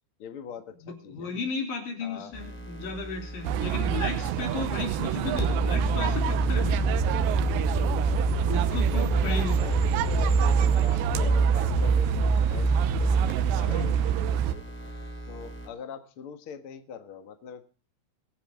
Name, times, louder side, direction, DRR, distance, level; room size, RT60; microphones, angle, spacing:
voice 1, 0.2-1.3 2.0-2.3 8.9-14.6 15.3-17.6, left 7 dB, 70° left, 7 dB, 1.2 m, -43 dB
voice 2, 0.8-6.9 7.8-8.0 8.5-9.6 13.7-13.9, left 4 dB, 50° left, 3 dB, 4.9 m, -34 dB
sound 1, 2.3-15.7, right 1 dB, 5° left, 2.4 m, -29 dB
sound 2, 3.4-14.5, right 10 dB, 80° right, 3.1 m, -27 dB
23.5 x 10.0 x 3.7 m, 0.38 s
omnidirectional pair, 5.2 m